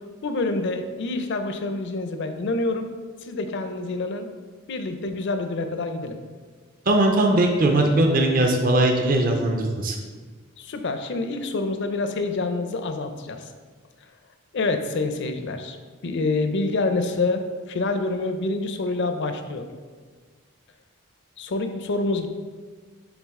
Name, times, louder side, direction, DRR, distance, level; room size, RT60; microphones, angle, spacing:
voice 1, 0.2-2.9 3.2-4.3 4.7-6.2 10.6-13.5 14.5-15.8 16.0-19.7 21.4-22.3, left 3 dB, 55° left, 7 dB, 0.5 m, -27 dB
voice 2, 6.9-10.0, right 1 dB, 40° right, 2 dB, 0.5 m, -20 dB
7.2 x 3.8 x 3.6 m, 1.5 s
head